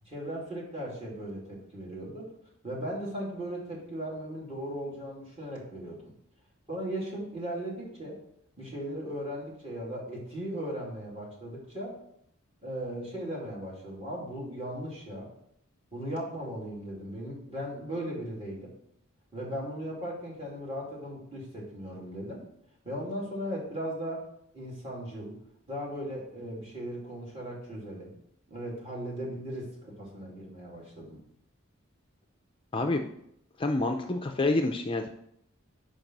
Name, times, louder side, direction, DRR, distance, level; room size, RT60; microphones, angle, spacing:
voice 1, 0.1-2.3 2.6-6.1 6.7-8.2 8.6-12.0 12.6-15.3 15.9-18.7 19.3-22.4 22.8-24.3 24.5-25.4 25.7-28.1 28.5-31.2, equal, 30° right, -5 dB, 2.7 m, -37 dB
voice 2, 32.7-33.1 33.6-35.1, left 2 dB, 25° left, 4 dB, 0.4 m, -28 dB
5.2 x 5.2 x 5.9 m, 0.72 s
head